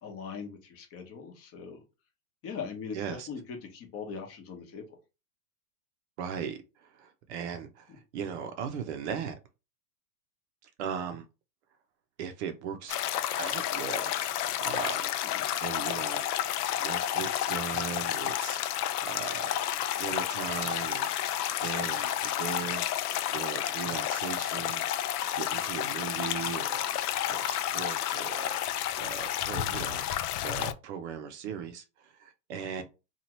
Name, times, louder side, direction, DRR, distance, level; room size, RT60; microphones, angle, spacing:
voice 1, 0.0-1.8 2.4-3.0 3.3-4.8 15.3-15.4 26.1-26.2 32.8-32.9, left 6 dB, 30° left, 0.9 m, -40 dB
voice 2, 2.9-3.3 6.2-9.4 10.6-11.3 12.2-13.0 13.4-15.1 15.6-16.3 16.8-18.6 19.0-19.5 20.0-21.4 21.6-24.8 25.3-26.9 27.3-28.6 29.0-30.0 30.4-32.8, right 7 dB, 45° right, 0.6 m, -38 dB
sound 1, 12.9-30.7, left 11 dB, 65° left, 0.5 m, -31 dB
2.9 x 2.4 x 2.9 m
hypercardioid pair, 115°, 50 cm